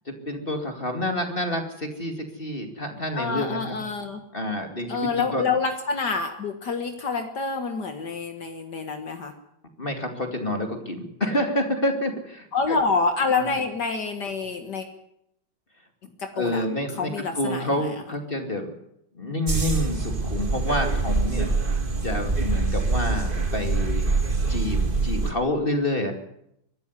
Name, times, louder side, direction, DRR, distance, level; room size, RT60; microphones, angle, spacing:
voice 1, 0.1-3.8 4.3-5.4 9.8-12.8 13.4-13.5 16.3-18.7 19.1-21.5 22.0-24.0 24.5-26.1, left 1 dB, 30° left, 5 dB, 2.6 m, -28 dB
voice 2, 3.1-4.2 4.9-9.3 12.5-14.9 16.2-16.7 16.9-17.9, left 4 dB, 60° left, 6 dB, 2.1 m, -27 dB
sound 1, 19.5-25.3, right 3 dB, 25° right, 2.1 m, -24 dB
23.0 x 12.5 x 9.8 m, 0.77 s
omnidirectional pair, 2.1 m